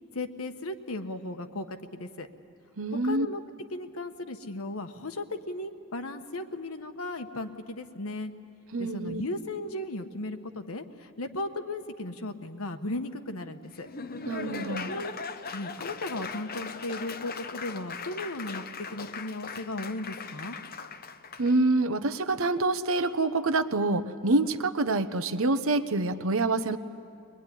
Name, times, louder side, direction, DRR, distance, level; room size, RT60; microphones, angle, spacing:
voice 1, 0.1-2.3 3.0-3.4 3.7-8.3 8.8-13.9 14.9-15.1 15.5-18.6 18.9-20.6, left 2 dB, 85° left, 8 dB, 1.3 m, -36 dB
voice 2, 2.8-3.3 8.7-9.2 14.3-14.9 21.4-26.8, right 2 dB, 75° right, 10 dB, 1.0 m, -26 dB
Laughter / Applause, 13.7-21.5, left 4 dB, 45° left, 0.9 m, -39 dB
23.0 x 22.0 x 9.9 m, 2.5 s
head